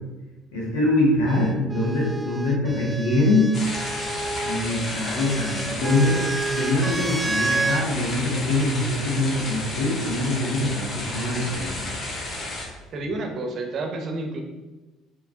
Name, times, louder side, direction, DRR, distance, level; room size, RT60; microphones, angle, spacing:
voice 1, 0.5-3.5 4.4-6.2 6.5-11.7, left 2 dB, 80° left, -3 dB, 1.2 m, -23 dB
sound 1, 1.3-7.9 9.0-9.6, right 2 dB, 15° right, 0.3 m, -30 dB
sound 2, 3.5-12.6, left 1 dB, 50° left, 1.3 m, -32 dB
voice 2, 12.9-14.4, right 2 dB, 50° right, 4 dB, 0.8 m, -30 dB
4.8 x 3.0 x 3.5 m, 1.1 s
hypercardioid pair, 55°, 0 cm